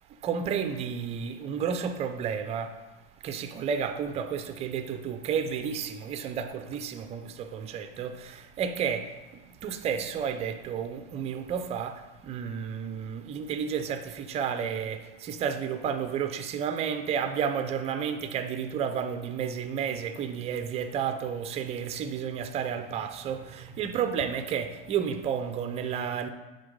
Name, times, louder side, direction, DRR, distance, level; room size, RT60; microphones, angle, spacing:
voice 1, 0.2-2.8 3.2-26.3, right 7 dB, 20° right, 0.4 m, -31 dB
8.5 x 3.9 x 5.2 m
supercardioid pair, 150°, 30 cm